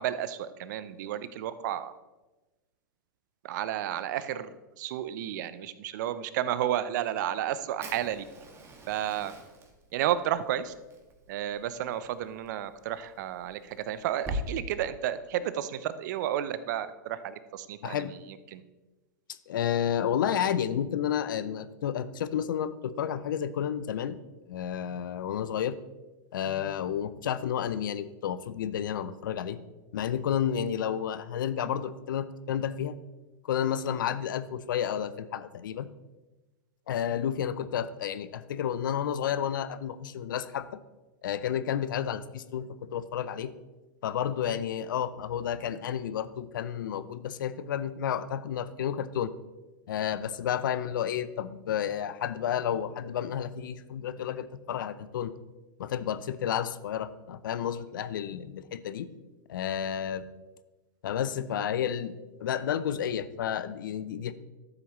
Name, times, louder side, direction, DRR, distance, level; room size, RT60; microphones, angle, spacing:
voice 1, 0.0-1.9 3.4-8.2 8.9-9.3 9.9-10.7 11.3-18.6, right 11 dB, 60° right, 14 dB, 0.7 m, -32 dB
Fire, 7.8-14.4, equal, 25° right, 1.6 m, -43 dB
voice 2, 17.8-18.1 19.5-24.2 24.5-25.8 26.3-29.6 29.9-33.0 33.4-35.9 36.9-40.7 41.2-43.5 44.0-49.3 49.9-55.3 55.8-59.1 59.5-60.2 61.0-62.2 62.4-64.3, left 9 dB, 70° left, 15 dB, 0.6 m, -31 dB
12.5 x 7.3 x 3.1 m, 1.1 s
hypercardioid pair, 105°, 11 cm